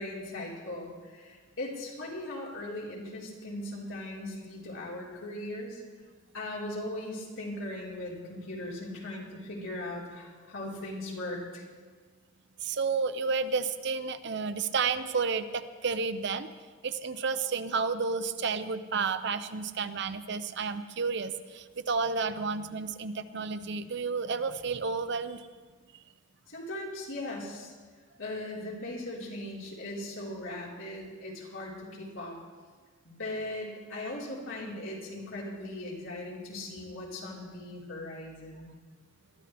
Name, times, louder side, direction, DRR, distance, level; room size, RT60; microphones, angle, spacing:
voice 1, 0.0-5.8 6.3-11.6 26.5-27.7 28.2-32.4 33.0-38.7, left 1 dB, 90° left, -5 dB, 4.3 m, -39 dB
voice 2, 12.6-16.5 16.8-25.5, right 4 dB, 60° right, 11 dB, 0.6 m, -31 dB
21.5 x 13.5 x 3.4 m, 1.4 s
head